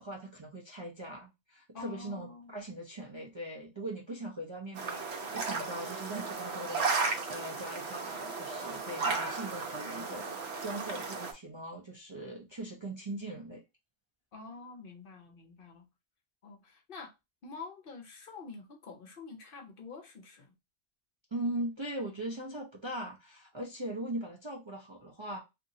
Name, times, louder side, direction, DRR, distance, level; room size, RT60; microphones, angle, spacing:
voice 1, 0.0-13.6 21.3-25.4, right 1 dB, 35° right, 0.5 m, -40 dB
voice 2, 1.7-2.6 14.3-15.8 16.4-17.1 17.4-20.5, left 4 dB, 55° left, 0.8 m, -47 dB
sound 1, 4.7-11.3, right 4 dB, 70° right, 0.9 m, -35 dB
2.9 x 2.6 x 2.6 m
omnidirectional pair, 1.2 m